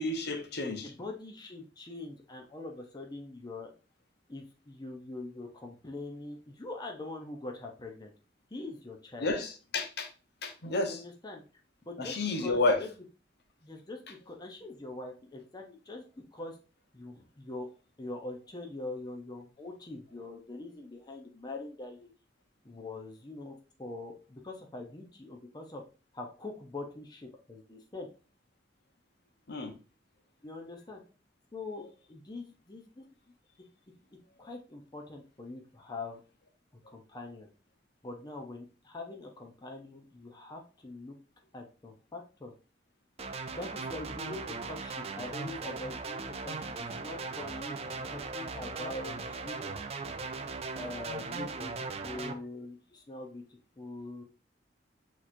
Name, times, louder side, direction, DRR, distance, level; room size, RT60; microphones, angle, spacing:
voice 1, 0.0-0.9 9.2-10.1 10.4-11.0 12.0-12.8 29.5-29.7, left 2 dB, 65° left, 5 dB, 0.9 m, -30 dB
voice 2, 0.8-3.7 4.3-8.1 8.5-9.3 10.9-11.4 11.8-12.9 13.6-16.6 16.9-17.7 18.0-22.1 22.6-25.8 26.1-28.1 30.4-31.0 31.5-33.0 34.4-36.2 36.9-37.5 38.0-41.1 41.5-42.5 43.5-47.8 48.1-49.8 50.7-53.4 53.8-54.2, left 2 dB, 25° left, 1 dB, 0.7 m, -43 dB
sound 1, 43.2-52.3, right 4 dB, 35° right, 0.4 m, -38 dB
6.2 x 3.1 x 2.6 m, 0.34 s
head